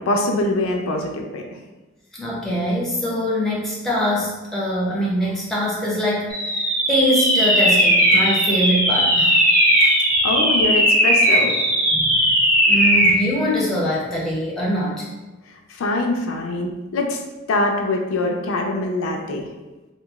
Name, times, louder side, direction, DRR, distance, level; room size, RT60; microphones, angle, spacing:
voice 1, 0.0-1.4 10.2-11.6 15.7-17.2 17.5-19.5, left 2 dB, 85° left, 2 dB, 0.4 m, -23 dB
voice 2, 2.1-9.3 11.9-12.4 12.6-15.1, equal, ahead, -6 dB, 0.5 m, -23 dB
sound 1, 6.3-13.2, equal, 45° right, 0.8 m, -17 dB
2.8 x 2.3 x 2.3 m, 1.1 s
head